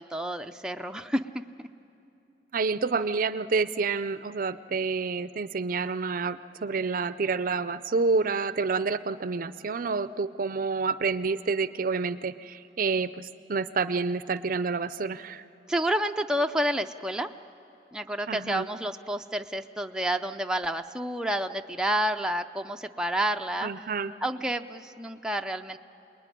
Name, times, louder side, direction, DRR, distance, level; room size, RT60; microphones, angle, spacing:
voice 1, 0.0-1.4 15.7-17.3 17.9-23.7 24.2-25.8, right 1 dB, 5° right, 5 dB, 0.5 m, -29 dB
voice 2, 2.5-15.4 18.3-18.7 23.6-24.1, right 4 dB, 50° right, 14 dB, 0.5 m, -28 dB
28.0 x 20.5 x 9.9 m, 2.9 s
head